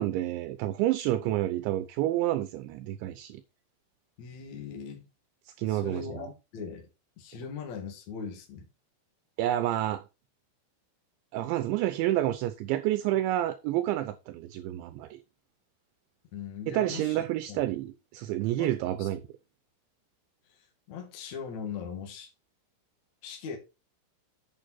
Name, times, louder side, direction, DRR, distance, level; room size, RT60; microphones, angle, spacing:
voice 1, 0.0-3.4 5.6-6.3 9.4-10.0 11.3-15.2 16.7-19.2, right 14 dB, 80° right, 2.8 m, -29 dB
voice 2, 4.2-5.1 5.7-6.9 7.2-8.7 16.3-17.6 18.6-19.1 20.5-22.3 23.2-23.6, left 6 dB, 45° left, 2.7 m, -40 dB
8.9 x 7.2 x 4.3 m
omnidirectional pair, 5.8 m